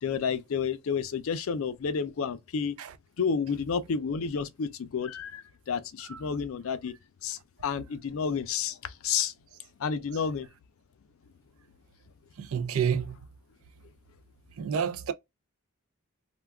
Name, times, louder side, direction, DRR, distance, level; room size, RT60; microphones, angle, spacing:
voice 1, 0.0-2.8 3.2-6.9 7.2-9.3 9.8-10.5, left 6 dB, 70° left, 0.4 m, -30 dB
voice 2, 12.4-13.1 14.6-15.1, right 7 dB, 70° right, 0.4 m, -28 dB
2.3 x 2.2 x 3.3 m
head